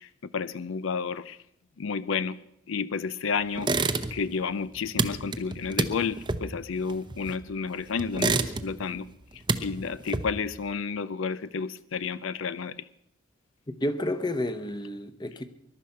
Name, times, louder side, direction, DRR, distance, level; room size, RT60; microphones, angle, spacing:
voice 1, 0.0-1.4 1.8-2.4 2.7-9.1 9.3-12.9, left 5 dB, 75° left, 0.5 m, -31 dB
sound 1, 3.6-4.4 4.6-7.6 8.0-8.9 9.2-10.6, right 3 dB, 25° right, 0.8 m, -28 dB
voice 2, 13.7-15.5, left 1 dB, 20° left, 0.9 m, -30 dB
21.5 x 11.5 x 5.7 m
head